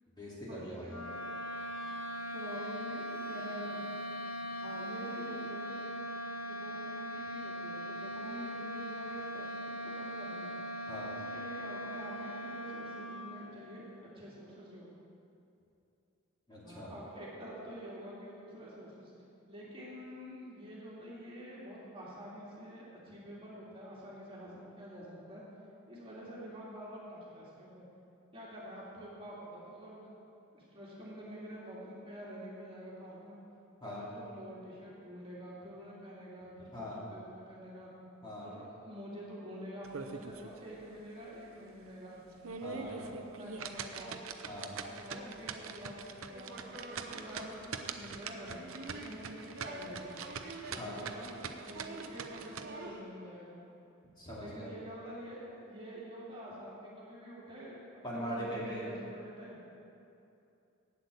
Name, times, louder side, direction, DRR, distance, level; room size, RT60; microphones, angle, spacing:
voice 1, 0.2-0.9 10.9-11.1 16.5-16.9 33.8-34.0 36.7-37.0 38.2-38.5 42.6-42.9 44.5-44.7 50.8-51.0 54.2-54.7 58.0-58.9, equal, 20° left, -7 dB, 2.5 m, -41 dB
sound 1, 0.8-13.6, equal, 85° left, 2.7 m, -40 dB
voice 2, 2.3-3.8 4.6-5.9 6.5-10.5 10.9-13.9 14.1-14.9 16.6-19.1 19.5-25.4 25.9-27.8 28.3-30.0 30.5-33.4 33.8-37.9 38.4-42.2 42.7-44.1 44.6-50.3 50.7-53.6 54.4-59.6, equal, 25° right, -7 dB, 2.3 m, -47 dB
sound 2, 39.8-40.6 41.0-41.1 41.6-41.7 42.3-52.7, right 6 dB, 75° right, 0.6 m, -43 dB
sound 3, 41.5-41.6 41.9-43.2 43.9-53.0, right 2 dB, 50° right, 1.4 m, -49 dB
8.4 x 8.0 x 8.1 m, 2.7 s
head